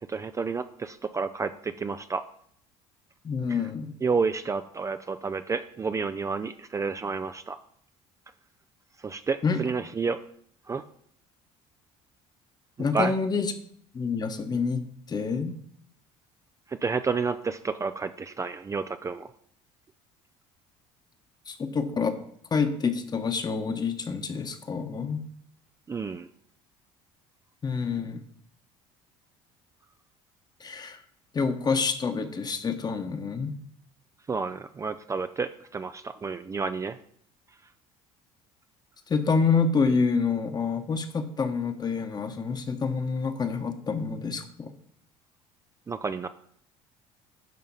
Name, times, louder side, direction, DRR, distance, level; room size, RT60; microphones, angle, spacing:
voice 1, 0.1-2.2 3.5-3.6 4.0-7.6 9.0-10.2 10.7-10.8 12.9-13.1 16.7-19.3 25.9-26.3 34.3-37.0 45.9-46.3, right 4 dB, 25° right, 10 dB, 0.4 m, -30 dB
voice 2, 3.2-3.9 9.4-9.6 12.8-13.5 13.9-14.8 15.1-15.5 21.5-22.2 22.5-25.2 27.6-28.2 30.6-31.0 31.3-33.5 39.1-44.7, left 5 dB, 30° left, 8 dB, 1.1 m, -27 dB
10.5 x 3.8 x 5.6 m, 0.65 s
supercardioid pair, 90°, 13 cm